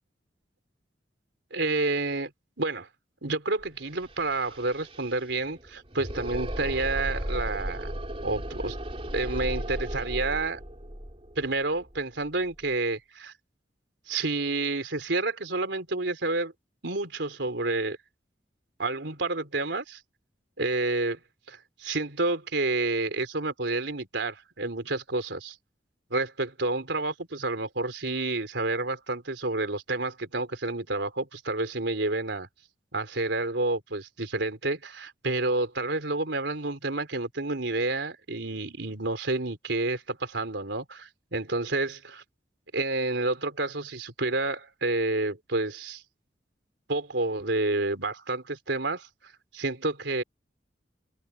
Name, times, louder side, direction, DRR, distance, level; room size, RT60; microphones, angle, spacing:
voice 1, 1.5-2.3 2.6-2.9 3.2-8.8 9.1-10.6 11.3-13.3 14.1-16.5 16.8-18.0 18.8-20.0 20.6-21.2 21.5-25.5 26.1-32.5 32.9-42.2 42.7-46.0 46.9-49.1 49.5-50.2, right 2 dB, 85° right, 3.4 m, -29 dB
sound 1, 3.6-3.7 3.9-12.7, equal, 35° right, 3.6 m, -36 dB
open air
head